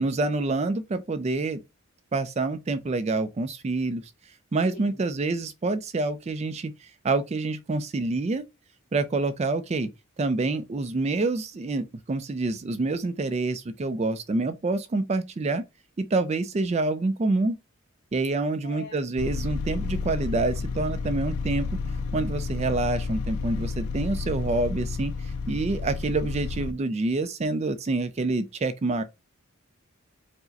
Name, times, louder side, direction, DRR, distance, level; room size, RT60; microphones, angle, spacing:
voice 1, 0.0-1.6 2.1-4.0 4.5-8.4 8.9-9.9 10.2-15.6 16.0-17.6 18.1-21.7 22.1-29.0, right 3 dB, 30° right, 0.3 m, -27 dB
voice 2, 18.6-19.1, left 4 dB, 50° left, 2.1 m, -43 dB
sound 1, 19.2-26.7, left 4 dB, 85° left, 0.4 m, -31 dB
4.6 x 2.1 x 4.0 m
head